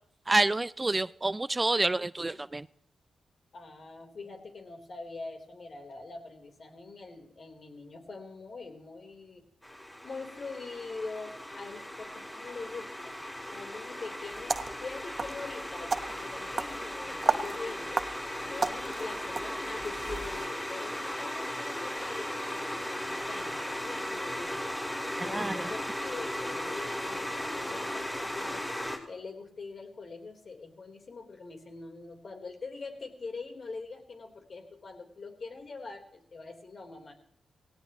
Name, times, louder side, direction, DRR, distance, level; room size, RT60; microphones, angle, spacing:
voice 1, 0.3-2.7 25.2-25.6, right 2 dB, 25° right, 17 dB, 0.5 m, -28 dB
voice 2, 3.5-9.4 10.0-13.2 13.5-18.0 18.4-24.8 25.2-28.7 29.1-37.1, left 3 dB, 55° left, 4 dB, 3.8 m, -43 dB
sound 1, 9.6-29.0, left 1 dB, 15° left, 4.9 m, -37 dB
sound 2, 14.3-20.5, right 4 dB, 50° right, 1.1 m, -35 dB
18.0 x 17.5 x 3.1 m, 0.71 s
supercardioid pair, 50°, 0 cm